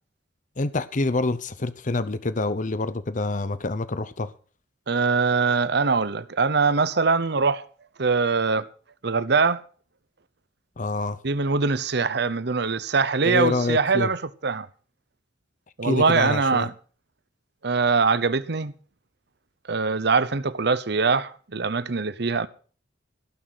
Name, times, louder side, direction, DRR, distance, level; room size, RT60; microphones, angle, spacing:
voice 1, 0.6-4.3 10.8-11.2 13.2-14.1 15.8-16.7, left 2 dB, 45° left, 0.8 m, -26 dB
voice 2, 4.9-7.7 8.0-8.7 9.0-9.6 11.2-14.7 15.8-16.7 17.6-18.7 19.7-22.5, right 4 dB, 65° right, 0.8 m, -22 dB
17.0 x 6.5 x 7.6 m
head